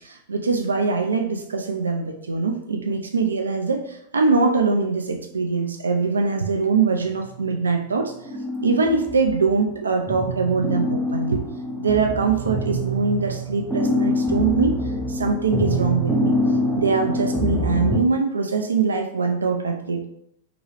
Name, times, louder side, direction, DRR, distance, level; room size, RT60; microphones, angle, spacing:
voice 1, 0.0-8.1 8.6-11.4 11.8-14.8 15.1-16.4 16.8-20.0, right 4 dB, 75° right, 3 dB, 0.3 m, -22 dB
sound 1, 7.1-7.6 8.2-9.7 10.1-18.0, equal, ahead, 0.4 m, -25 dB
2.9 x 2.3 x 3.0 m, 0.75 s
figure-of-eight pair, 95°, 0 cm